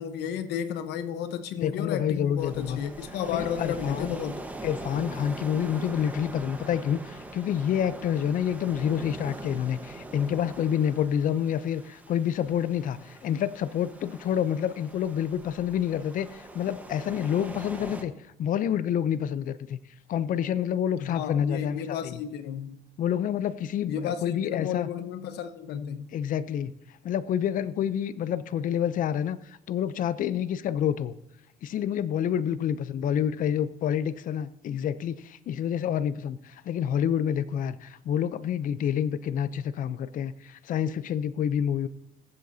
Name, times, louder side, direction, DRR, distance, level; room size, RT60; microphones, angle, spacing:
voice 1, 0.0-4.4 20.9-22.8 23.9-26.1, left 8 dB, 80° left, 1.0 m, -32 dB
voice 2, 1.6-2.8 3.3-4.2 4.6-18.1 18.4-19.8 20.1-22.2 23.0-24.9 26.1-26.7 27.0-29.4 29.7-31.1 31.6-41.9, left 9 dB, 55° left, 0.6 m, -28 dB
sound 1, 2.4-18.0, right 2 dB, 10° right, 1.2 m, -42 dB
21.5 x 7.8 x 2.7 m
cardioid pair, 110°, 17 cm